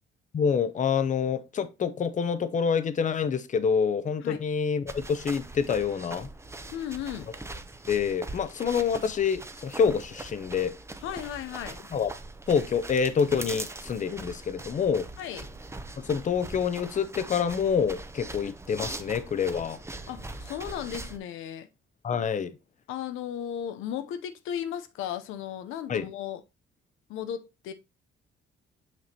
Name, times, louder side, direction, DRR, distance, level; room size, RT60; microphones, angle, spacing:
voice 1, 0.3-6.3 7.9-10.8 11.9-12.1 12.5-15.1 16.0-19.8 22.0-22.5 25.9-26.0, left 6 dB, 40° left, 0.7 m, -27 dB
sound 1, 4.9-21.2, right 2 dB, 15° right, 0.7 m, -41 dB
voice 2, 6.7-7.3 11.0-11.8 15.2-15.6 20.1-21.7 22.9-26.4 27.1-27.7, left 10 dB, 90° left, 0.6 m, -35 dB
6.0 x 5.9 x 2.7 m
cardioid pair, 90°, 20 cm